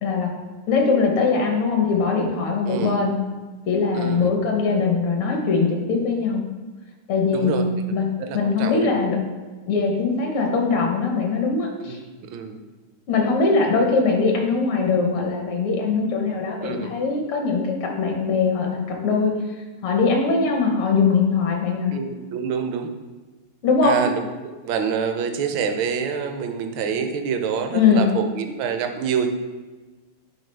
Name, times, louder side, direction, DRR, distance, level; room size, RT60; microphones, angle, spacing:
voice 1, 0.0-0.3 0.7-3.2 3.7-6.4 7.1-8.0 8.3-9.2 9.7-12.0 13.1-19.3 19.8-21.9 23.6-24.0 27.7-28.1, left 4 dB, 80° left, 1 dB, 1.8 m, -21 dB
voice 2, 2.7-3.0 3.9-4.3 7.3-7.6 8.2-8.9 11.8-12.6 16.6-16.9 21.9-22.9 23.8-29.3, right 6 dB, 75° right, 6 dB, 1.4 m, -26 dB
10.5 x 3.6 x 3.3 m, 1.3 s
omnidirectional pair, 2.3 m